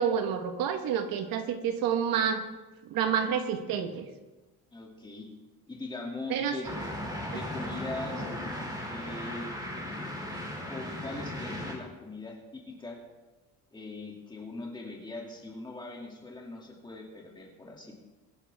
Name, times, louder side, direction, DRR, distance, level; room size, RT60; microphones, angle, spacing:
voice 1, 0.0-2.4 2.9-4.1 6.3-6.6, right 7 dB, 70° right, 7 dB, 1.3 m, -28 dB
voice 2, 4.7-5.3 5.7-6.7 7.2-8.3 8.9-9.5 10.6-13.0 13.7-17.9, left 2 dB, 10° left, -1 dB, 2.3 m, -41 dB
sound 1, 6.6-11.7, left 1 dB, 10° right, 2.6 m, -36 dB
23.0 x 10.0 x 3.5 m, 1.2 s
cardioid pair, 170°, 37 cm